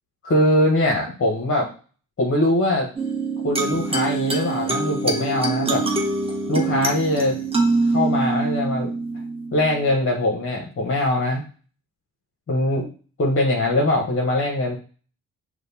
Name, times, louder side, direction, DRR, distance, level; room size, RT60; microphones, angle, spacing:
voice 1, 0.2-1.7 2.2-2.9 3.4-5.8 6.5-7.4 7.9-8.9 9.5-11.4 12.5-12.9 13.2-14.8, left 1 dB, 35° left, 0 dB, 1.1 m, -21 dB
sound 1, 3.0-9.9, right 3 dB, 15° right, 1.0 m, -24 dB
6.3 x 2.3 x 2.7 m, 0.39 s
hypercardioid pair, 50°, 39 cm